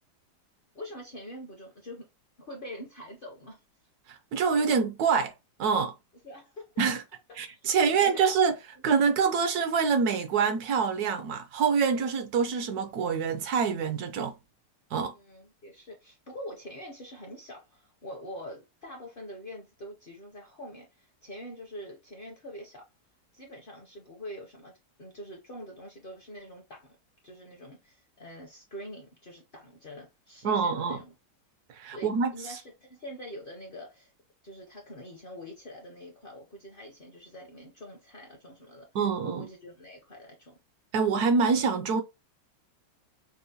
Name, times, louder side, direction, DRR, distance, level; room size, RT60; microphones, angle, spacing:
voice 1, 0.7-2.1 2.4-3.6 6.2-6.8 7.8-8.2 11.8-11.9 15.1-22.8 23.3-24.7 25.0-26.9 27.2-31.1 31.9-34.1 34.4-38.8 39.2-40.6, equal, 50° left, 0.7 m, -45 dB
voice 2, 4.1-5.3 5.6-5.9 6.8-7.0 7.4-14.3 14.9-15.1 30.4-31.0 31.7-32.3 38.9-39.4 40.9-42.0, right 5 dB, 70° right, 1.0 m, -26 dB
5.4 x 2.1 x 2.7 m
omnidirectional pair, 1.9 m